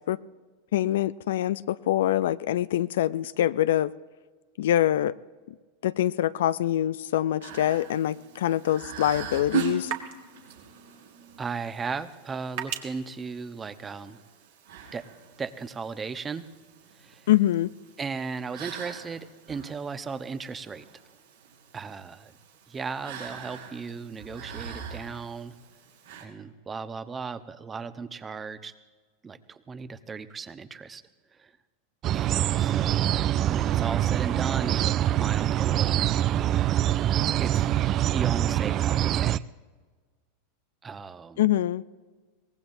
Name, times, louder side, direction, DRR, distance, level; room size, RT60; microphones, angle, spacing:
voice 1, 0.7-3.9 4.6-5.2 5.8-9.9 17.3-17.7 41.4-41.8, left 12 dB, 70° left, 0.4 m, -24 dB
sound 1, 7.4-26.2, right 7 dB, 80° right, 5.1 m, -41 dB
sound 2, 7.5-14.3, right 9 dB, 60° right, 1.7 m, -43 dB
voice 2, 11.4-14.2 14.9-15.1 15.4-16.5 17.0-17.3 18.0-20.9 21.7-22.3 22.7-25.5 26.2-28.7 29.2-31.0 31.3-31.5 32.1-33.1 33.4-35.9 37.4-37.6 38.1-39.4 40.8-41.5, right 5 dB, 20° right, 0.9 m, -36 dB
sound 3, 32.0-39.4, right 12 dB, 40° right, 0.3 m, -24 dB
23.0 x 18.5 x 2.7 m
hypercardioid pair, 95°, 0 cm